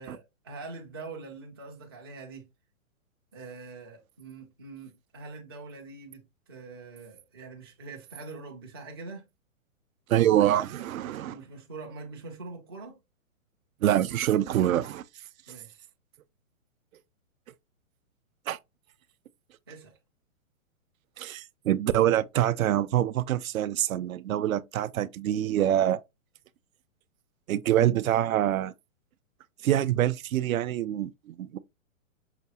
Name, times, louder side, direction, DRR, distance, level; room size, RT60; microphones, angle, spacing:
voice 1, 0.0-2.4 3.3-6.2 6.5-9.3 11.3-13.0 15.5-15.9 19.7-20.0, right 3 dB, 20° right, 0.4 m, -44 dB
voice 2, 10.1-11.4 13.8-15.0 18.5-18.6 21.2-26.0 27.5-28.7 29.6-31.6, right 12 dB, 80° right, 0.5 m, -25 dB
5.7 x 2.4 x 2.7 m
hypercardioid pair, 160°, 41 cm